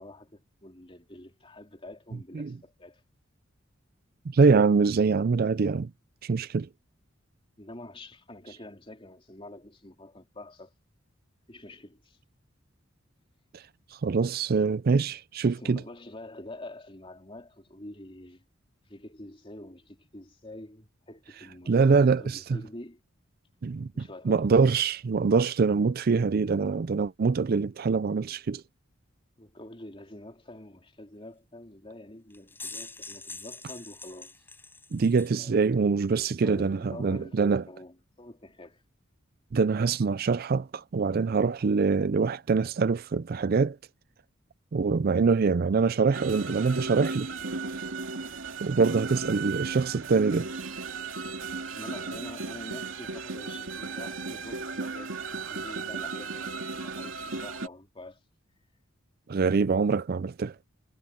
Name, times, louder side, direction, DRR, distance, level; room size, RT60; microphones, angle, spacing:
voice 1, 0.0-3.0 7.6-10.7 11.5-12.2 15.4-18.4 18.9-23.0 23.9-24.7 29.4-34.3 35.3-35.7 36.4-38.8 51.7-58.2, left 1 dB, 25° left, 3.2 m, -46 dB
voice 2, 4.3-5.9 6.2-6.7 13.5-13.6 13.9-15.8 21.7-22.4 23.6-28.6 34.9-37.6 39.5-43.8 44.7-47.3 47.8-47.9 48.6-50.5 59.3-60.5, right 4 dB, 50° right, 0.4 m, -24 dB
sound 1, 32.3-35.4, left 3 dB, 10° left, 6.6 m, -43 dB
sound 2, 46.1-57.7, right 4 dB, 80° right, 2.8 m, -35 dB
head